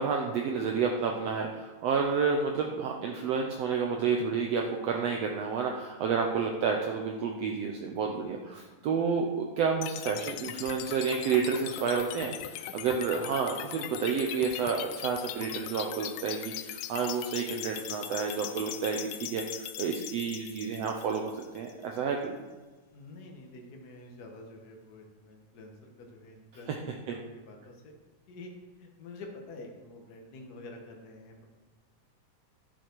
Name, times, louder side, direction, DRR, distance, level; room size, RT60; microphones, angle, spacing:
voice 1, 0.0-22.4 27.1-27.2, right 5 dB, 80° right, 2 dB, 1.4 m, -30 dB
sound 1, 9.8-21.8, left 13 dB, 80° left, 2.1 m, -40 dB
voice 2, 22.9-28.0 28.3-28.5 28.8-31.5, left 2 dB, 60° left, 1 dB, 1.0 m, -48 dB
12.0 x 7.0 x 4.6 m, 1.3 s
omnidirectional pair, 3.8 m